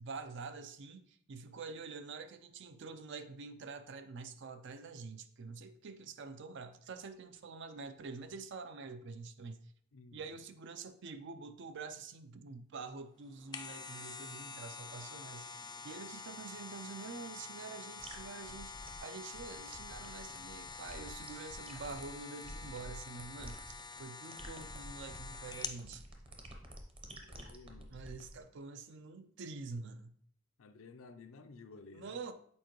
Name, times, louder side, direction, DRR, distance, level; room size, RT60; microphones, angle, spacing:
voice 1, 0.0-9.7 10.1-26.0 27.9-30.1 31.9-32.3, right 4 dB, 60° right, 0.5 m, -47 dB
voice 2, 9.9-10.4 27.1-28.0 30.6-32.2, left 3 dB, 75° left, 0.5 m, -54 dB
sound 1, 13.2-25.8 26.3-26.4, left 5 dB, 20° left, 0.4 m, -47 dB
sound 2, 18.0-28.4, right 1 dB, 25° right, 0.8 m, -50 dB
7.0 x 4.4 x 3.0 m
head